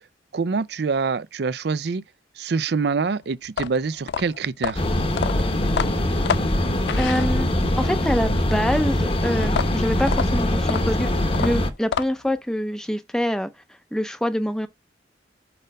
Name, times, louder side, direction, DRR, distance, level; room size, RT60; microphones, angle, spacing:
voice 1, 0.3-2.0 2.4-4.8, right 4 dB, 60° right, 0.5 m, -25 dB
sound 1, 3.4-7.8 9.4-12.4, left 7 dB, 65° left, 0.3 m, -29 dB
sound 2, 4.8-11.7, left 1 dB, 30° left, 0.9 m, -22 dB
voice 2, 7.0-7.5 7.8-11.1 11.4-13.5 13.9-14.7, equal, 5° left, 0.6 m, -25 dB
5.1 x 4.2 x 5.3 m
head